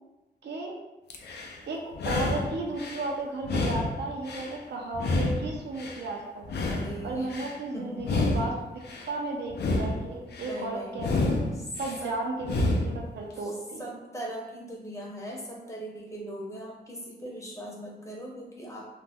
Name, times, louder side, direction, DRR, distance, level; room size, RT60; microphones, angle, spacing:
voice 1, 0.4-0.8 1.7-6.5 7.0-8.6 9.1-11.4 11.8-14.0, right 2 dB, 75° right, 0 dB, 0.5 m, -34 dB
sound 1, 1.1-1.6 1.9-3.1 3.4-4.6 4.9-6.0 6.4-7.5 8.0-9.1 9.5-10.6 11.0-12.0 12.4-13.1, left 2 dB, 70° left, 0.4 m, -29 dB
voice 2, 6.6-7.3 7.7-8.2 10.4-11.7 12.0-12.1 13.4-13.5 13.8-18.9, right 1 dB, 15° left, -3 dB, 0.7 m, -40 dB
2.5 x 2.0 x 3.4 m, 1.1 s
wide cardioid pair, 120°, 18 cm